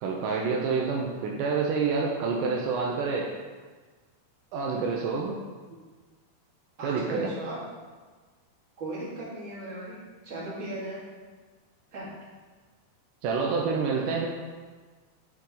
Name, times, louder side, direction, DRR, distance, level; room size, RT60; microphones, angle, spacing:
voice 1, 0.0-3.3 4.5-5.3 6.8-7.3 13.2-14.3, right 5 dB, 85° right, -1 dB, 1.8 m, -27 dB
voice 2, 6.8-7.6 8.8-10.0 10.2-11.0 11.9-12.1, right 1 dB, 35° right, -9 dB, 2.7 m, -36 dB
9.8 x 5.2 x 3.9 m, 1.4 s
omnidirectional pair, 4.6 m